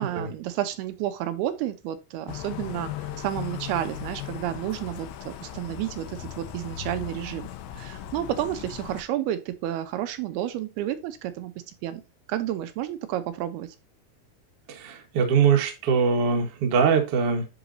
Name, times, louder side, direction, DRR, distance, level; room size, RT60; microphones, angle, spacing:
voice 1, 0.0-2.9 3.2-7.5 7.8-11.5 11.8-12.0 12.3-13.7, right 12 dB, 85° right, 2.7 m, -31 dB
sound 1, 2.3-9.0, left 10 dB, 75° left, 2.4 m, -37 dB
voice 2, 14.7-17.5, right 6 dB, 60° right, 1.6 m, -22 dB
10.5 x 4.0 x 2.6 m
omnidirectional pair, 4.5 m